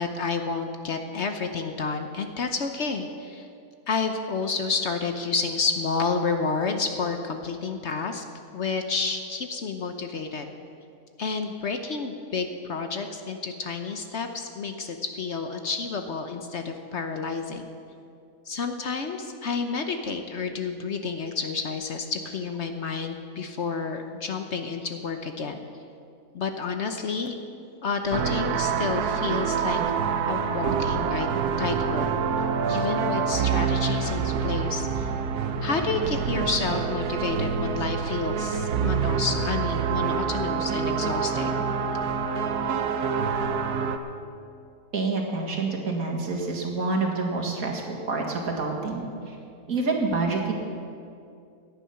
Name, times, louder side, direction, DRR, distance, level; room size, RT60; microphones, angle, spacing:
voice 1, 0.0-3.5 3.9-8.2 8.5-10.5 11.2-17.7 18.5-25.6 26.3-27.3 27.8-29.8 30.2-31.3 31.6-32.1 32.7-35.1 35.6-41.6, left 4 dB, 55° left, 6 dB, 1.0 m, -30 dB
sound 1, 28.1-44.0, right 6 dB, 85° right, 1.3 m, -26 dB
voice 2, 44.9-49.1 49.7-50.5, right 3 dB, 65° right, 0 dB, 2.3 m, -27 dB
17.5 x 10.0 x 5.8 m, 2.5 s
omnidirectional pair, 1.6 m